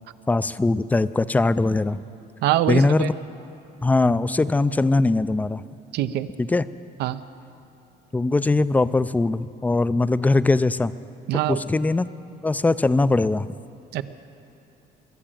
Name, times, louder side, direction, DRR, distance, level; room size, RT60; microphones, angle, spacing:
voice 1, 0.3-2.0 2.7-3.1 3.8-5.6 6.4-6.6 8.1-10.9 11.5-12.1 12.4-13.6, left 3 dB, 10° left, 15 dB, 0.3 m, -21 dB
voice 2, 2.4-3.1 5.9-6.3 7.0-7.2 11.3-11.6 13.9-14.0, right 13 dB, 80° right, 13 dB, 0.6 m, -23 dB
22.0 x 7.5 x 8.9 m, 2.9 s
cardioid pair, 110°, 17 cm